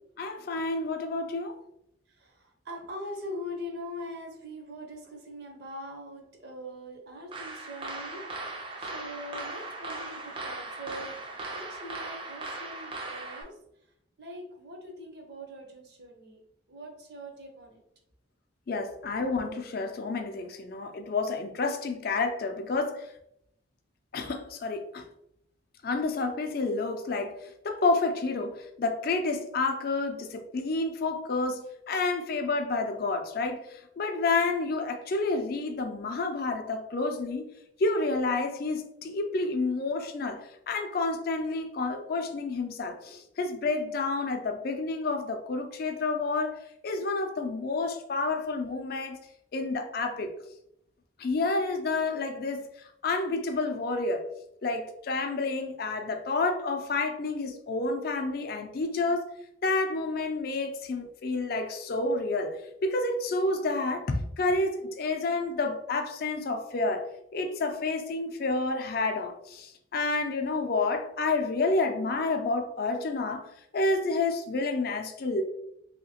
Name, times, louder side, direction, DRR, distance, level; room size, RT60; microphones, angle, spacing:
voice 1, 0.2-1.6 18.7-23.1 24.1-25.1 25.8-27.3 27.6-37.5 37.8-40.4 40.7-46.6 46.8-49.2 49.5-50.3 51.2-52.6 53.0-54.2 54.6-59.3 59.6-62.6 62.8-67.0 67.3-73.5 73.7-75.4, left 3 dB, 50° left, 0.4 m, -29 dB
voice 2, 2.1-13.6 14.2-16.4 16.7-17.8 18.9-19.0, left 1 dB, 55° right, 0.7 m, -42 dB
sound 1, 7.3-13.4, right 2 dB, 25° right, 0.4 m, -38 dB
3.0 x 2.8 x 2.8 m
head